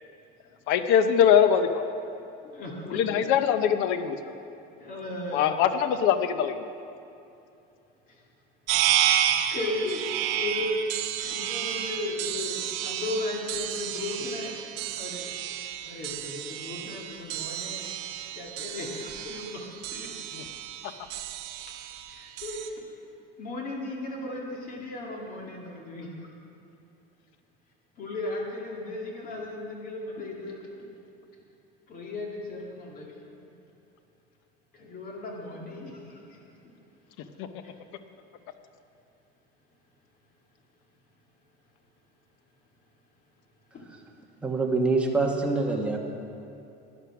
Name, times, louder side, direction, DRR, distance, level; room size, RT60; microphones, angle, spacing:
voice 1, 0.7-1.8 2.9-4.2 5.3-6.6 20.3-20.4 37.4-37.5, left 8 dB, 75° left, 10 dB, 0.8 m, -22 dB
voice 2, 2.5-3.0 4.8-5.6 9.3-10.7 11.2-14.5 15.0-15.2 15.8-17.8 18.4-19.6 19.9-20.1 22.2-22.6 23.4-26.1 28.0-30.7 31.9-33.1 34.8-35.9, left 2 dB, 40° left, -1 dB, 2.1 m, -35 dB
sound 1, 8.7-22.7, right 11 dB, 90° right, 0.8 m, -31 dB
voice 3, 44.4-46.0, right 3 dB, 5° right, 0 dB, 1.2 m, -25 dB
12.0 x 9.9 x 5.9 m, 2.7 s
cardioid pair, 150°, 21 cm